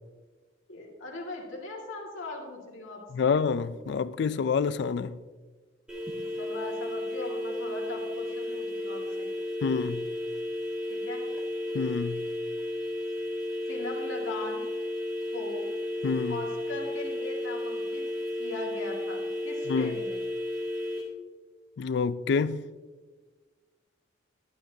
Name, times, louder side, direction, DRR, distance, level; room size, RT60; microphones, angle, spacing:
voice 1, 0.7-3.3 6.4-9.3 10.9-11.3 13.7-14.6 15.3-15.7 16.3-18.0 18.4-20.2, left 2 dB, 75° left, 2.0 m, -39 dB
voice 2, 3.1-5.2 9.6-10.1 11.7-12.3 16.0-16.4 19.7-19.9 21.8-22.6, left 5 dB, 55° left, 0.3 m, -27 dB
sound 1, 5.9-21.0, left 1 dB, 5° right, 2.0 m, -33 dB
11.5 x 9.3 x 2.7 m
head